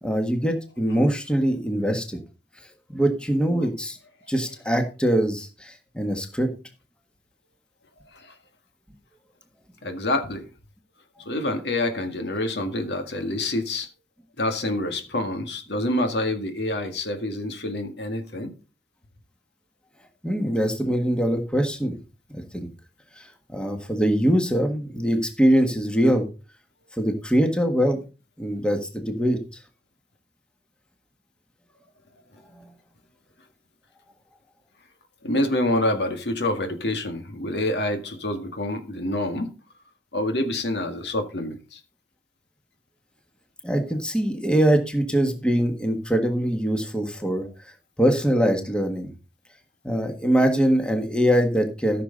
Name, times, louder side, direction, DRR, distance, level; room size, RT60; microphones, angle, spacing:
voice 1, 0.0-2.2 2.9-4.0 4.3-6.5 20.2-22.0 22.3-22.7 23.2-23.3 23.5-26.3 27.0-28.0 28.4-29.4 43.6-47.5 48.0-49.1 49.8-52.0, equal, 5° left, 1.6 m, -23 dB
voice 2, 9.8-10.5 11.3-13.9 14.4-18.5 35.2-39.5 40.1-41.8, left 1 dB, 70° left, 1.9 m, -27 dB
14.5 x 6.7 x 3.9 m
head